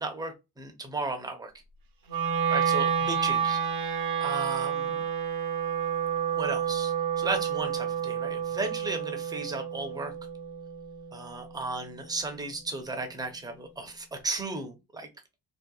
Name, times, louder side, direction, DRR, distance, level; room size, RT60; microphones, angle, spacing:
voice 1, 0.0-1.5 2.5-5.0 6.4-10.1 11.1-15.1, right 3 dB, 10° right, 0.6 m, -35 dB
Wind instrument woodwind instrument, 2.1-12.2, right 8 dB, 65° right, 0.7 m, -30 dB
2.7 x 2.1 x 2.3 m
cardioid pair, 90°, 38 cm